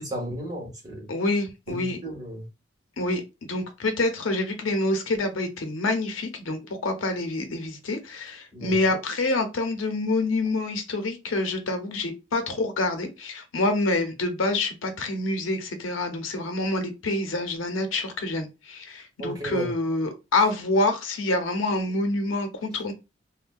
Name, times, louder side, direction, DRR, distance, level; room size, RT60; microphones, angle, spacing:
voice 1, 0.0-1.1 1.7-2.4 8.5-8.7 19.2-19.7, right 1 dB, 20° right, 1.1 m, -33 dB
voice 2, 1.1-2.0 3.0-22.9, left 2 dB, 90° left, 0.7 m, -27 dB
3.4 x 2.1 x 2.2 m
head